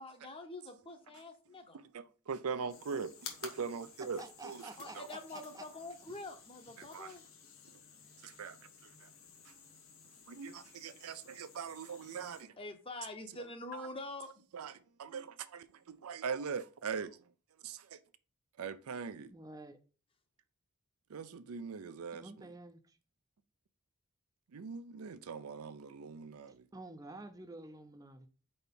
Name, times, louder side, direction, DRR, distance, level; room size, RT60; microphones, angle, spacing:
voice 1, 0.0-1.8 4.8-7.2 12.6-14.3, left 2 dB, 25° left, 0.8 m, -46 dB
voice 2, 1.7-4.7 4.9-5.1 6.8-7.1 8.2-8.6 8.8-9.1 9.5-9.6 10.3-12.5 13.7-13.9 14.5-17.2 17.6-18.0 18.6-19.3 21.1-22.5 24.5-26.7, right 5 dB, 80° right, 0.5 m, -42 dB
sound 1, 2.7-12.4, left 6 dB, 65° left, 1.3 m, -54 dB
voice 3, 4.0-5.7 19.3-19.8 22.1-23.0 26.7-28.3, right 2 dB, 15° right, 0.5 m, -50 dB
4.6 x 4.2 x 5.2 m
head